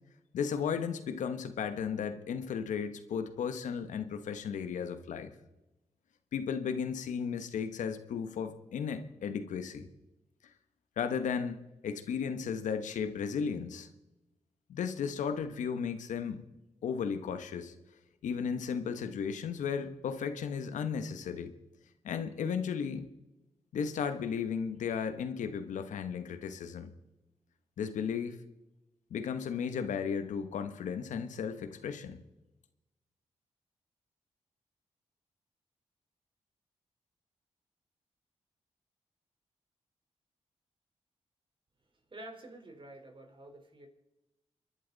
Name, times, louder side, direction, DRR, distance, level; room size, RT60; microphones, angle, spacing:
voice 1, 0.3-5.3 6.3-9.9 11.0-13.9 14.7-16.4 16.8-17.7 18.2-21.5 22.0-23.1 23.7-26.9 27.8-28.4 29.1-32.2, left 6 dB, 85° left, 9 dB, 1.3 m, -35 dB
voice 2, 42.1-43.9, right 1 dB, 40° right, 3 dB, 4.3 m, -49 dB
27.5 x 11.5 x 4.1 m, 0.97 s
supercardioid pair, 50°, 12 cm